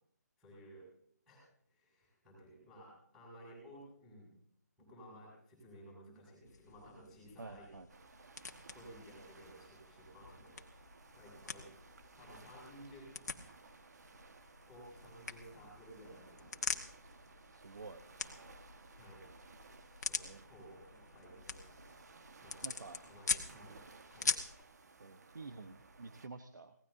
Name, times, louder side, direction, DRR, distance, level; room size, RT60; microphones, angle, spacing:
voice 1, 0.4-0.9 1.3-1.4 1.7-4.3 4.8-7.7 8.7-10.6 11.1-11.7 12.1-13.1 14.7-16.8 18.9-19.2 20.0-21.8 22.4-23.8 24.1-24.3, equal, ahead, -11 dB, 6.8 m, -56 dB
sound 1, 6.5-24.6, left 5 dB, 65° left, 1.6 m, -44 dB
voice 2, 7.4-7.9 17.5-18.0 20.2-20.8 22.6-23.0 25.0-26.7, right 3 dB, 80° right, 9 dB, 1.1 m, -50 dB
sound 2, 7.9-26.3, right 4 dB, 60° right, 1.5 m, -59 dB
25.5 x 18.0 x 2.7 m, 0.67 s
figure-of-eight pair, 160°, 10 cm